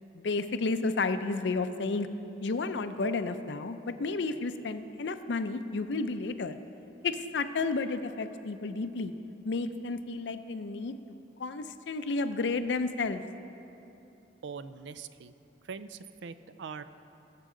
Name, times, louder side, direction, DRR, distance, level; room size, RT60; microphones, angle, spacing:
voice 1, 0.1-2.1 2.4-6.6 7.0-9.1 9.4-11.0 11.4-13.2, left 3 dB, 70° left, 10 dB, 0.5 m, -32 dB
voice 2, 14.4-15.3 15.7-16.8, right 5 dB, 75° right, 13 dB, 0.4 m, -42 dB
17.0 x 7.5 x 3.8 m, 2.8 s
head